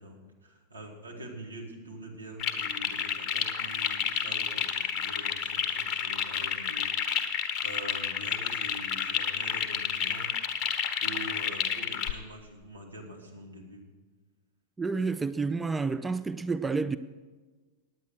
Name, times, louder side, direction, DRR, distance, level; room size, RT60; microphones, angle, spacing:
voice 1, 0.0-10.3 11.0-13.8, right 1 dB, 80° right, 2.1 m, -45 dB
sound 1, 2.4-12.1, left 7 dB, 35° left, 1.1 m, -30 dB
voice 2, 14.8-17.0, right 4 dB, 10° right, 0.3 m, -29 dB
9.3 x 9.2 x 6.5 m
figure-of-eight pair, 90°, 0 cm